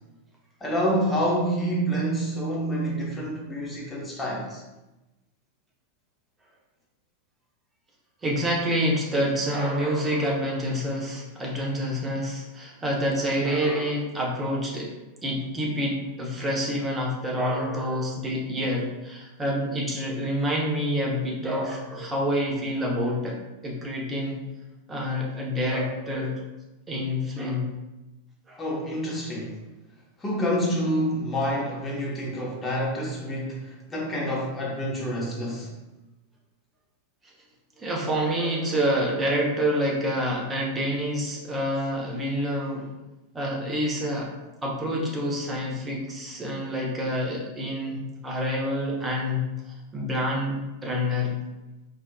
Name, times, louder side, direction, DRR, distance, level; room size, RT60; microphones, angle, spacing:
voice 1, 0.6-4.6 28.6-29.5 30.2-35.7, equal, 15° left, -3 dB, 1.0 m, -27 dB
voice 2, 8.2-14.9 15.2-23.4 23.6-24.4 24.9-26.4 26.9-27.7 28.5-28.6 37.8-42.9 43.3-44.3 44.6-48.0 48.2-51.4, equal, 15° right, -2 dB, 0.8 m, -27 dB
4.4 x 2.5 x 2.2 m, 1.0 s
figure-of-eight pair, 90°, 0 cm